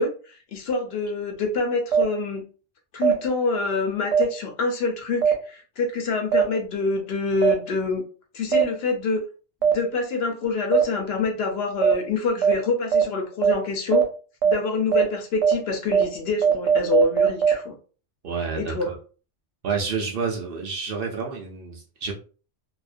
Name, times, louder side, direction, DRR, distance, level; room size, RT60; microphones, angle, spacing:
voice 1, 0.0-2.4 2.9-8.0 8.3-9.2 9.6-14.1 14.4-17.8 18.5-18.9, left 3 dB, 65° left, 4 dB, 0.7 m, -26 dB
sound 1, 1.9-2.0 3.0-3.1 4.1-4.2 5.2-5.3 6.3-6.4 7.4-7.5 8.5-8.6 9.6-9.7 10.7-10.8 11.8-11.9 12.4-12.5 12.9-13.0 13.4-13.5 13.9-14.0 14.4-14.5 14.9-15.0 15.4-15.5 15.9-16.0 16.4-17.5, right 7 dB, 85° right, 0.9 m, -18 dB
voice 2, 18.2-19.0 19.6-22.1, right 5 dB, 60° right, 0 dB, 0.6 m, -29 dB
2.4 x 2.1 x 2.4 m, 0.37 s
omnidirectional pair, 1.2 m